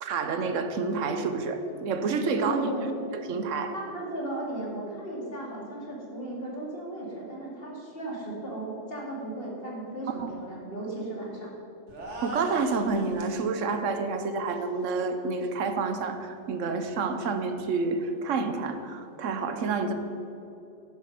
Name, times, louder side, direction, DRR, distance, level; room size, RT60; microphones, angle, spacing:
voice 1, 0.0-2.6 3.1-3.7 10.2-10.3 12.2-19.9, right 4 dB, 80° right, 8 dB, 1.1 m, -29 dB
voice 2, 2.3-2.9 3.7-11.5, right 1 dB, 50° left, -3 dB, 2.6 m, -35 dB
sound 1, 11.9-13.4, right 1 dB, 65° right, 1.8 m, -38 dB
11.0 x 7.2 x 5.8 m, 2.9 s
omnidirectional pair, 1.3 m